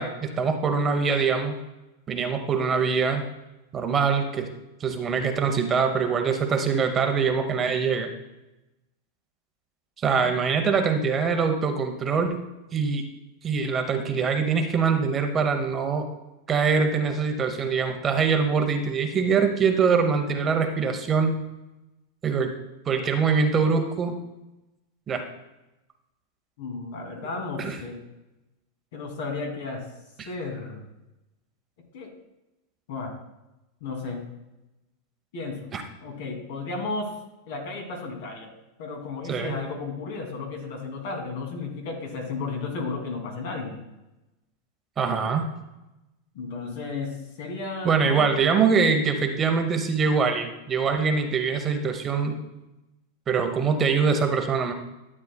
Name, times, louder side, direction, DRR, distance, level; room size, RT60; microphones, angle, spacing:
voice 1, 0.0-1.6 2.1-3.2 3.7-4.5 4.8-8.1 10.0-12.4 12.7-13.0 13.4-16.1 16.5-21.4 22.2-22.5 22.9-24.2 25.1-25.2 27.6-27.8 30.2-30.3 35.7-35.8 39.3-39.6 45.0-45.5 47.8-52.4 53.3-54.7, right 5 dB, 20° right, 5 dB, 0.9 m, -23 dB
voice 2, 26.6-28.0 28.9-29.8 30.3-30.8 31.9-32.1 32.9-33.1 33.8-34.2 35.3-35.6 36.0-37.2 37.5-38.5 38.8-43.8 46.3-48.3, left 3 dB, 70° left, 1 dB, 2.6 m, -33 dB
12.5 x 8.4 x 2.3 m, 0.98 s
supercardioid pair, 150°, 0 cm